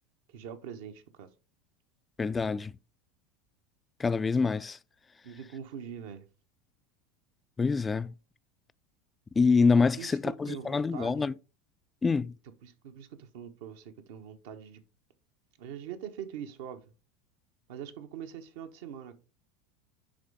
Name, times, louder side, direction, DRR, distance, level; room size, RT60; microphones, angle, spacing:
voice 1, 0.3-1.3 5.2-6.3 10.0-11.3 12.6-14.8 15.6-16.9 17.7-19.2, right 8 dB, 65° right, 1.0 m, -43 dB
voice 2, 2.2-2.7 4.0-4.8 7.6-8.1 9.4-11.3 12.0-12.4, left 4 dB, 20° left, 0.4 m, -26 dB
10.5 x 3.8 x 3.4 m
hypercardioid pair, 80°, 0 cm